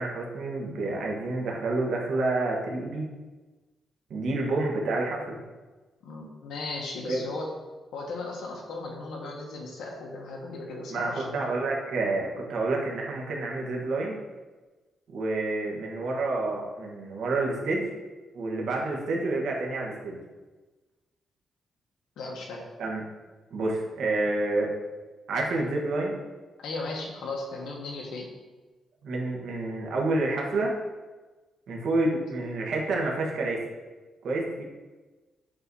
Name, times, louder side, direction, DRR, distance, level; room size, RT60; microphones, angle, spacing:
voice 1, 0.0-3.1 4.1-5.4 7.1-7.2 10.9-14.2 15.1-17.9 18.3-20.2 22.8-23.0 23.5-24.7 25.3-26.2 29.0-30.7 31.7-33.6 34.2-34.6, right 2 dB, 65° right, -2 dB, 1.3 m, -28 dB
voice 2, 6.0-7.5 7.9-11.4 22.2-22.6 26.6-28.3, left 3 dB, 85° left, -1 dB, 1.2 m, -36 dB
7.7 x 2.8 x 4.6 m, 1.2 s
wide cardioid pair, 170°, 0 cm